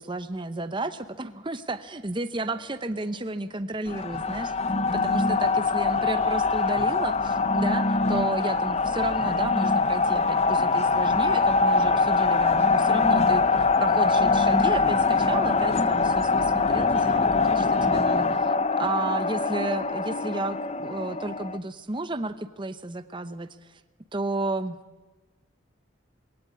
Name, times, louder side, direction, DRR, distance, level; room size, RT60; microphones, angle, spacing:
voice 1, 0.0-23.5 24.1-24.8, right 2 dB, 25° right, 11 dB, 0.8 m, -32 dB
sound 1, 3.9-21.6, left 4 dB, 30° left, 0.7 m, -23 dB
22.5 x 16.5 x 9.6 m, 1.2 s
head